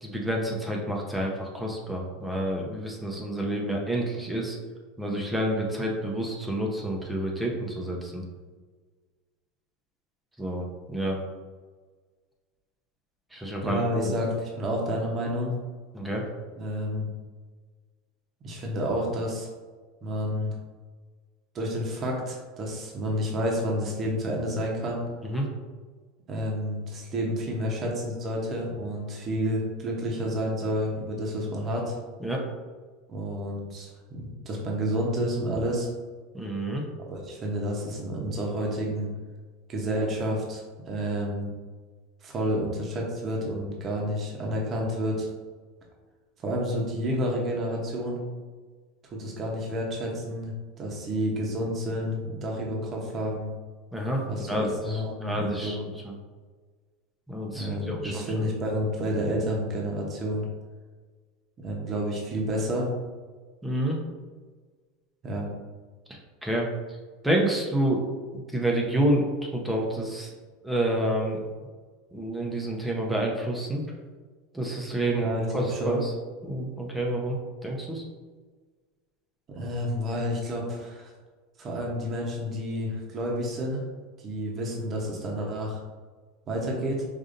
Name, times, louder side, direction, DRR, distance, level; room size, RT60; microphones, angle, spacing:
voice 1, 0.0-4.6 5.0-8.2 10.4-11.2 13.3-14.1 15.9-16.2 25.2-25.5 32.2-32.4 36.3-36.8 53.9-55.8 56.0-56.1 57.3-58.5 63.6-64.0 66.4-66.7 67.2-68.0 68.5-70.3 70.6-71.4 72.1-73.8 74.5-75.3 75.5-76.1 76.4-77.4 77.6-78.0, right 1 dB, 5° right, -1 dB, 0.6 m, -28 dB
voice 2, 13.6-15.6 16.6-17.1 18.4-19.5 20.0-20.5 21.5-25.0 26.3-32.0 33.1-35.9 37.1-39.1 39.7-41.5 42.2-45.3 46.4-48.2 49.1-53.5 54.3-55.8 57.5-60.4 61.6-62.9 65.2-65.5 75.1-76.0 79.5-81.1 81.6-83.9 84.2-85.8 86.5-87.1, equal, 35° right, -1 dB, 0.9 m, -30 dB
5.0 x 2.6 x 2.6 m, 1.4 s
supercardioid pair, 125°, 0 cm